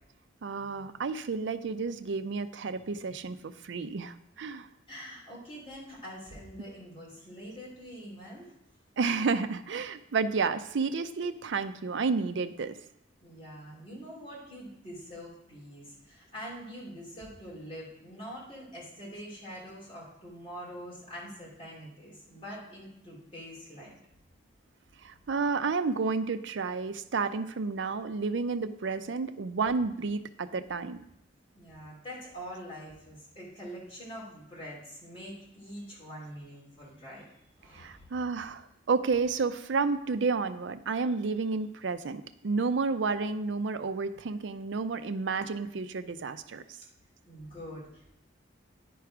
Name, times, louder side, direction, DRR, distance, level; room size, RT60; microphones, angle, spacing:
voice 1, 0.4-4.7 9.0-12.8 25.0-31.0 37.7-46.6, right 4 dB, 75° right, 11 dB, 0.5 m, -31 dB
voice 2, 4.9-8.5 13.2-24.0 31.5-37.2 37.6-38.2 47.3-48.1, equal, 30° left, -5 dB, 3.0 m, -44 dB
10.0 x 4.7 x 4.8 m, 0.79 s
head